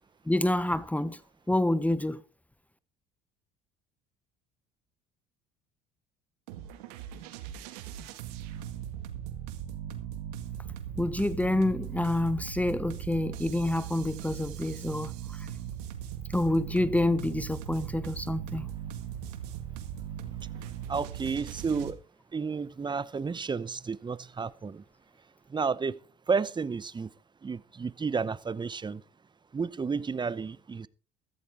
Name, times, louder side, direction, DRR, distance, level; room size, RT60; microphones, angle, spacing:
voice 1, 0.3-1.2 1.5-2.2 11.0-15.5 16.3-18.7, left 1 dB, 5° left, 0.8 m, -28 dB
sound 1, 6.5-21.9, right 10 dB, 90° right, 1.8 m, -39 dB
voice 2, 20.9-22.0 22.3-24.8 25.5-26.0 26.3-27.1 27.4-29.0 29.5-30.9, right 5 dB, 25° right, 0.8 m, -31 dB
14.5 x 13.0 x 3.5 m
supercardioid pair, 80°, 20 cm